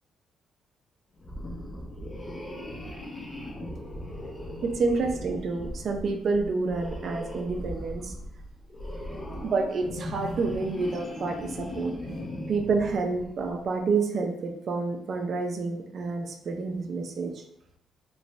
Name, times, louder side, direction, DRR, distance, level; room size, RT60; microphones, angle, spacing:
sound 1, 1.2-13.7, left 1 dB, 35° left, 1.0 m, -38 dB
voice 1, 4.6-8.1 9.3-12.2 12.5-17.4, right 4 dB, 55° right, 4 dB, 0.6 m, -29 dB
3.1 x 2.5 x 3.3 m, 0.74 s
cardioid pair, 90°, 0 cm